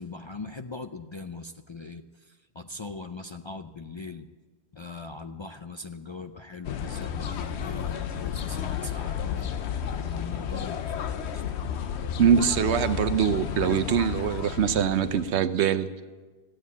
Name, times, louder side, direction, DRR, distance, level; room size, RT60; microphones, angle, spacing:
voice 1, 0.0-4.3 4.7-9.5 9.9-11.4, left 3 dB, 40° left, 7 dB, 0.4 m, -40 dB
sound 1, 6.6-15.3, left 8 dB, 80° left, 1.0 m, -32 dB
voice 2, 12.2-15.9, right 8 dB, 90° right, 12 dB, 1.0 m, -23 dB
14.5 x 9.5 x 8.3 m, 1.3 s
omnidirectional pair, 1.1 m